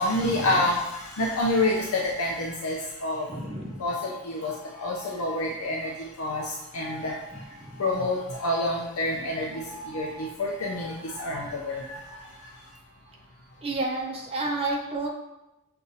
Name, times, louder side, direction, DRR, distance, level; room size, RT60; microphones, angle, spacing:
voice 1, 0.0-3.3 3.8-5.9 6.2-6.4 6.7-7.2 7.8-12.0, left 1 dB, 65° left, -2 dB, 0.5 m, -28 dB
voice 2, 3.3-3.8 7.6-7.8 13.6-15.1, right 2 dB, 25° right, -1 dB, 0.7 m, -30 dB
6.5 x 2.5 x 2.7 m, 0.92 s
head